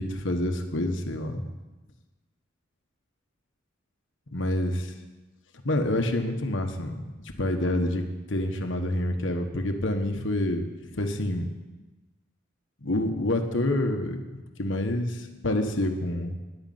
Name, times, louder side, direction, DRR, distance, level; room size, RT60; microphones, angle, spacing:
voice 1, 0.0-1.4 4.3-4.9 5.6-7.0 7.4-8.0 8.3-10.6 10.9-11.4 12.8-16.3, left 1 dB, 65° left, 5 dB, 1.4 m, -27 dB
10.5 x 9.5 x 9.4 m, 1.1 s
head